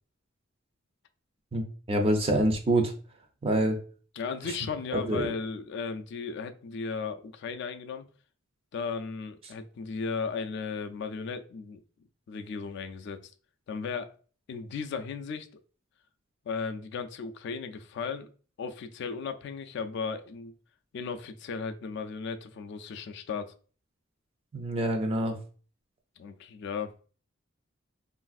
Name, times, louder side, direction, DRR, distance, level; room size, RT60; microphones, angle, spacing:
voice 1, 1.9-2.9 3.4-3.8 4.9-5.3 24.5-25.4, right 1 dB, 30° right, 0.4 m, -26 dB
voice 2, 4.2-8.0 8.7-11.8 12.3-13.2 13.7-14.1 14.5-15.5 16.5-18.3 18.6-20.5 20.9-23.5 26.2-26.9, left 5 dB, 60° left, 0.3 m, -35 dB
3.2 x 2.5 x 2.3 m
head